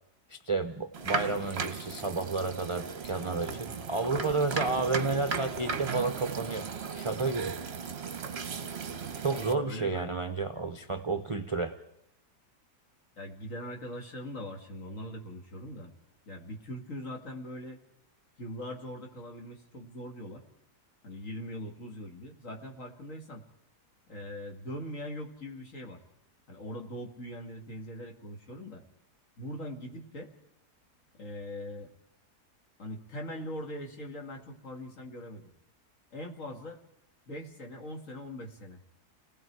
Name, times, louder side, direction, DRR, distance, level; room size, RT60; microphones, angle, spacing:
voice 1, 0.3-6.7 6.9-7.5 9.2-11.8, right 3 dB, 30° right, 7 dB, 0.6 m, -31 dB
sound 1, 0.9-9.5, right 5 dB, 45° right, 1.1 m, -36 dB
voice 2, 9.3-10.1 10.7-10.8 13.2-15.9 16.3-17.8 18.4-20.4 21.0-23.4 24.1-26.0 26.5-28.8 29.4-30.3 31.2-31.9 32.8-35.5 36.1-36.8 37.3-38.8, left 1 dB, 50° left, 2 dB, 2.5 m, -41 dB
29.5 x 18.5 x 4.7 m, 0.77 s
omnidirectional pair, 1.7 m